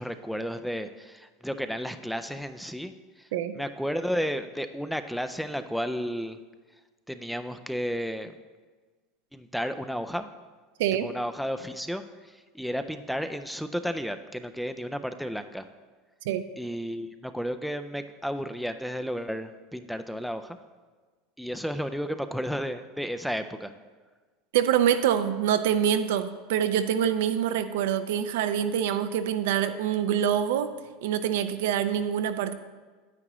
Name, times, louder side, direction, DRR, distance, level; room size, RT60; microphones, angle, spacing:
voice 1, 0.0-3.3 3.5-6.4 7.1-8.3 9.3-10.3 11.0-15.7 16.6-20.6 21.4-23.7, equal, ahead, 9 dB, 0.3 m, -33 dB
voice 2, 24.5-30.7 31.0-32.5, right 9 dB, 80° right, 10 dB, 0.6 m, -25 dB
9.6 x 8.9 x 3.0 m, 1.4 s
supercardioid pair, 150°, 0 cm